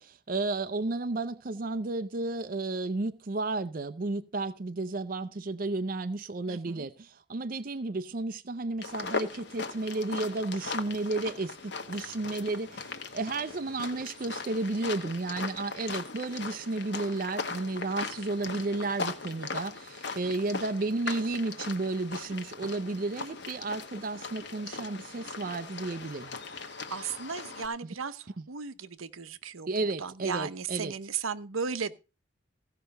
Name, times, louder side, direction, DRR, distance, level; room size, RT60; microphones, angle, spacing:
voice 1, 0.0-26.4 29.7-30.9, right 2 dB, 45° right, 0.5 m, -32 dB
voice 2, 6.5-6.9 26.9-31.9, right 6 dB, 90° right, 0.9 m, -36 dB
sound 1, 8.8-27.7, left 4 dB, 55° left, 1.3 m, -39 dB
15.5 x 5.7 x 6.6 m
head